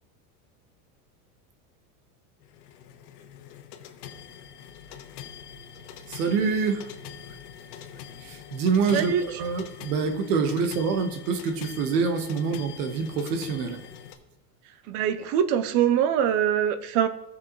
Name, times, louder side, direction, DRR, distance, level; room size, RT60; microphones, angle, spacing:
sound 1, 2.4-14.1, left 8 dB, 90° left, 1.2 m, -44 dB
voice 1, 6.1-6.9 8.2-13.8, right 5 dB, 80° right, 6 dB, 1.4 m, -26 dB
voice 2, 14.9-17.1, right 9 dB, 35° right, 12 dB, 0.4 m, -23 dB
16.0 x 5.8 x 3.1 m, 0.93 s
supercardioid pair, 160°, 46 cm